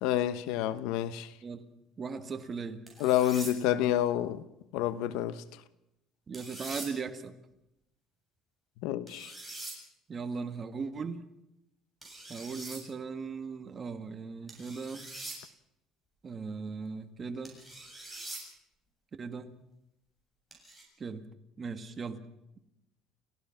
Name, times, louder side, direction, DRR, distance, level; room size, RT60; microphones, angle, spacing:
voice 1, 0.0-1.3 3.0-4.4 4.7-5.4 8.8-9.3, left 12 dB, 85° left, 1.1 m, -28 dB
voice 2, 2.0-2.8 6.3-7.4 10.1-11.2 12.3-15.1 16.2-17.5 19.2-19.5 21.0-21.3 21.6-22.2, right 5 dB, 30° right, 1.8 m, -38 dB
sound 1, 2.9-3.5 6.3-6.9 9.1-9.8 12.0-12.8 14.5-15.4 17.4-18.4 20.5-20.8, right 2 dB, ahead, 7.7 m, -43 dB
30.0 x 15.5 x 5.9 m
cardioid pair, 135°, 0 cm